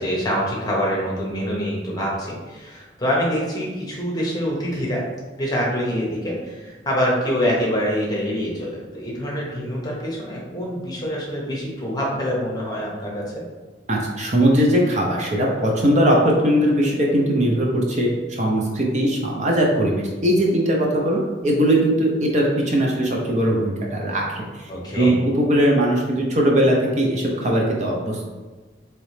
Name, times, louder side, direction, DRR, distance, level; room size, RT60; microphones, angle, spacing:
voice 1, 0.0-5.0 5.4-13.3 24.7-25.2, equal, 20° left, -3 dB, 0.9 m, -25 dB
voice 2, 13.9-28.2, right 1 dB, 40° right, -1 dB, 0.6 m, -20 dB
3.8 x 3.1 x 3.2 m, 1.3 s
head